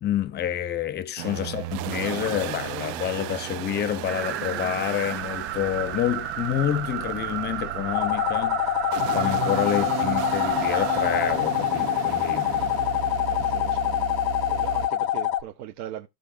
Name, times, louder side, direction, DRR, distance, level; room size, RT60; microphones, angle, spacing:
voice 1, 0.0-8.8 9.1-12.5, left 11 dB, 20° left, 0.6 m, -28 dB
sound 1, 1.2-14.9, right 16 dB, 50° right, 0.5 m, -34 dB
sound 2, 4.1-11.3, right 11 dB, 25° right, 1.3 m, -32 dB
sound 3, 7.9-15.4, left 13 dB, 90° left, 0.8 m, -25 dB
voice 2, 13.3-14.0 14.5-16.1, right 11 dB, 75° right, 1.0 m, -39 dB
15.5 x 5.2 x 2.4 m
cardioid pair, 150°, 48 cm